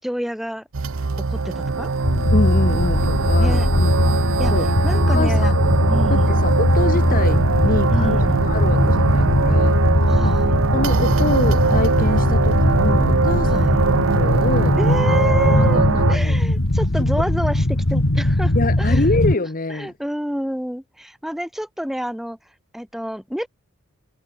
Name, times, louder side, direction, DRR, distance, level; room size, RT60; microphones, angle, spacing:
voice 1, 0.0-0.7 1.2-1.9 3.4-3.7 4.4-4.5 4.8-5.5 5.9-6.4 7.9-8.5 10.1-10.6 13.4-13.9 14.8-15.8 16.1-19.2 19.7-22.4 22.7-23.5, equal, ahead, 4.6 m, -29 dB
sound 1, 0.7-16.2, right 4 dB, 70° right, 0.8 m, -22 dB
sound 2, 2.0-19.3, left 1 dB, 70° left, 2.2 m, -19 dB
voice 2, 2.3-3.9 4.5-4.7 5.1-5.7 6.1-10.3 10.7-13.7 14.1-14.8 15.5-16.4 17.0-17.1 18.5-19.9, left 2 dB, 45° left, 1.2 m, -26 dB
head